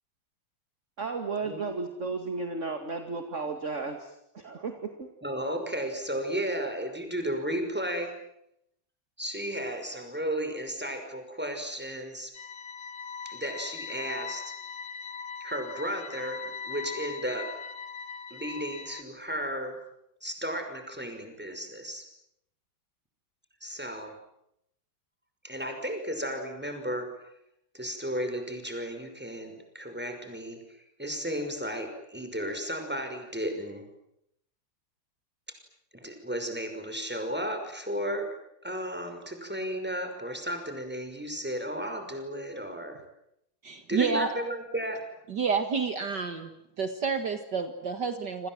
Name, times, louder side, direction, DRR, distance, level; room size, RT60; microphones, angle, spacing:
voice 1, 1.0-5.1, right 4 dB, 35° right, 6 dB, 2.6 m, -34 dB
voice 2, 5.2-8.1 9.2-12.3 13.2-14.6 15.4-17.5 18.3-19.8 20.2-22.1 23.6-24.2 25.4-27.1 27.7-33.8 35.9-38.3 38.6-43.0 43.9-45.0, equal, 5° right, 5 dB, 5.7 m, -34 dB
sound 1, 12.3-19.0, left 6 dB, 60° left, 2.2 m, -40 dB
voice 3, 43.6-44.3 45.3-46.5 46.8-48.5, right 5 dB, 55° right, 8 dB, 2.3 m, -29 dB
28.5 x 26.5 x 7.8 m, 0.79 s
omnidirectional pair, 2.2 m